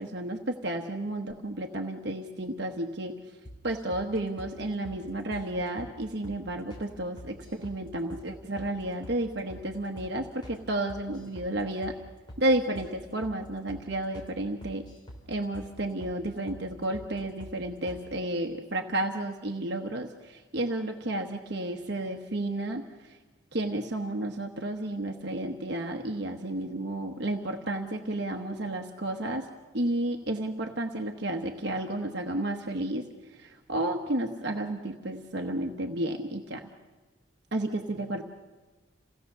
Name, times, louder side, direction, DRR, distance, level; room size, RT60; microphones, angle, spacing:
voice 1, 0.0-3.2 3.6-12.0 12.4-14.8 15.3-22.8 23.5-29.5 29.7-33.0 33.4-36.6 37.5-38.2, right 1 dB, 60° right, 3 dB, 1.1 m, -32 dB
sound 1, 3.4-4.1 4.4-4.5 4.8-5.0 5.3-5.5 5.8-5.9 6.2-6.4 6.7-6.9 7.2-7.8 8.1-8.3 8.6-8.7 9.0-9.2 9.5-9.7 10.0-10.1 10.4-10.6 10.9-11.5 11.8-12.0 12.3-12.4 12.7-12.9 13.2-13.4 13.7-13.8 14.1-14.3 14.6-15.2 15.5-15.7 16.0-16.2 16.5-16.6 16.9-17.1 17.4-17.6 17.9-18.0, equal, 25° left, 3.4 m, -45 dB
27.5 x 17.5 x 6.8 m, 1.3 s
head